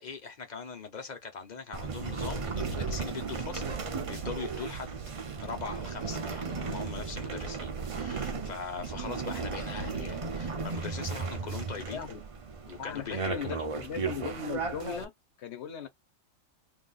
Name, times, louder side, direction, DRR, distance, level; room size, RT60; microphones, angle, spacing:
voice 1, 0.0-5.0 5.4-12.1 12.7-13.7, left 5 dB, 40° left, 0.8 m, -41 dB
sound 1, 1.7-15.0, right 4 dB, 50° right, 0.4 m, -35 dB
voice 2, 12.8-15.1 15.4-15.9, left 7 dB, 60° left, 1.1 m, -38 dB
2.7 x 2.4 x 3.9 m
omnidirectional pair, 1.4 m